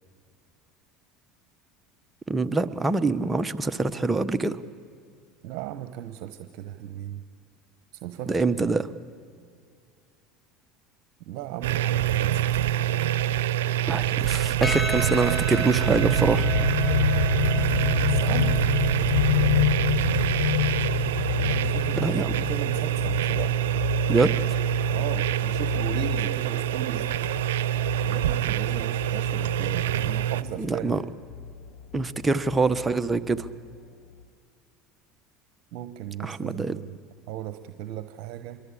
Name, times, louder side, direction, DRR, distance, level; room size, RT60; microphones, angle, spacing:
voice 1, 2.3-4.6 8.3-8.9 13.9-16.5 22.0-22.4 24.1-24.3 30.6-31.0 31.9-33.5 36.2-36.8, right 3 dB, 15° right, 10 dB, 1.1 m, -25 dB
voice 2, 5.4-7.2 7.9-8.3 11.2-13.0 18.0-18.6 21.4-22.1 22.4-24.0 24.9-27.3 28.0-31.0 35.7-36.9 37.3-38.6, right 11 dB, 65° right, 9 dB, 1.0 m, -36 dB
sound 1, 11.6-30.4, right 11 dB, 85° right, 0.6 m, -25 dB
Percussion, 14.6-19.2, left 2 dB, 30° left, 1.2 m, -35 dB
sound 2, 15.9-33.8 34.2-34.3, left 10 dB, 70° left, 0.8 m, -29 dB
26.5 x 22.5 x 8.6 m, 2.3 s
supercardioid pair, 90°, 0 cm